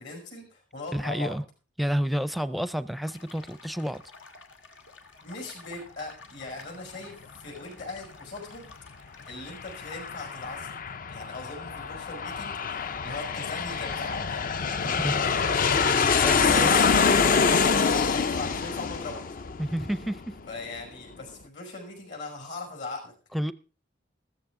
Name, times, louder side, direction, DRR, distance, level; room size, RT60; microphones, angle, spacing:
voice 1, 0.0-1.4 5.2-8.7 9.3-10.7 11.1-15.8 16.3-19.2 20.5-23.1, left 3 dB, 65° left, 5.8 m, -40 dB
voice 2, 0.9-1.4 1.8-4.0 15.0-15.2 16.2-16.7 19.6-20.4 23.3-23.5, equal, ahead, 0.5 m, -29 dB
sound 1, 3.0-10.5, left 4 dB, 90° left, 2.0 m, -51 dB
Aircraft, 9.3-20.5, left 5 dB, 45° left, 0.5 m, -25 dB
14.5 x 14.0 x 3.7 m
head